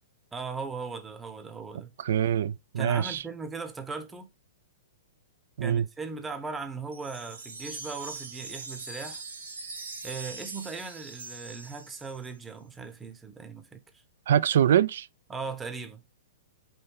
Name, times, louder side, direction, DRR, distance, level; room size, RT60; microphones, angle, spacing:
voice 1, 0.3-1.9 2.8-4.3 5.6-9.2 10.0-13.8 15.3-16.0, right 4 dB, 15° right, 0.8 m, -38 dB
voice 2, 2.0-3.2 5.6-5.8 14.3-15.1, right 10 dB, 60° right, 0.3 m, -24 dB
sound 1, 6.9-12.3, right 3 dB, 85° right, 1.6 m, -42 dB
4.4 x 2.6 x 3.5 m
figure-of-eight pair, 110°, 0 cm